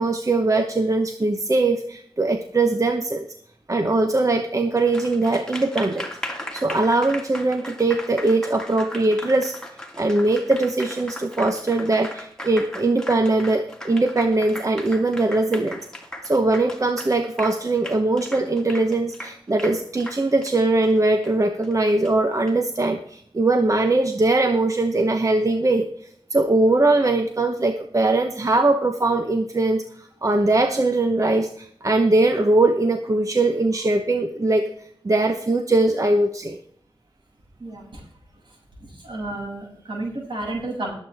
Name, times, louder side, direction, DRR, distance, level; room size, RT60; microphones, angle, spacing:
voice 1, 0.0-3.3 3.7-6.1 6.5-9.5 10.0-15.8 16.2-25.9 26.3-34.7 35.0-36.6, right 2 dB, 40° right, 6 dB, 0.9 m, -21 dB
Applause, 4.8-22.5, left 1 dB, 10° left, 2.3 m, -37 dB
voice 2, 37.6-38.0 38.8-40.9, right 2 dB, 65° right, -3 dB, 6.8 m, -31 dB
20.5 x 8.3 x 3.5 m, 0.64 s
wide cardioid pair, 95°, 9 cm